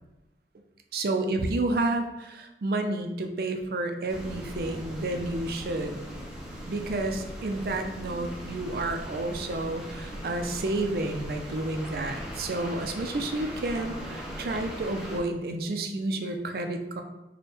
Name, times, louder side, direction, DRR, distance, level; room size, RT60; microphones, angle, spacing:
voice 1, 0.9-6.1 6.7-17.0, right 2 dB, 55° right, 5 dB, 0.4 m, -30 dB
sound 1, 4.1-15.2, equal, 5° right, 0.5 m, -39 dB
4.2 x 2.2 x 3.3 m, 1.0 s
head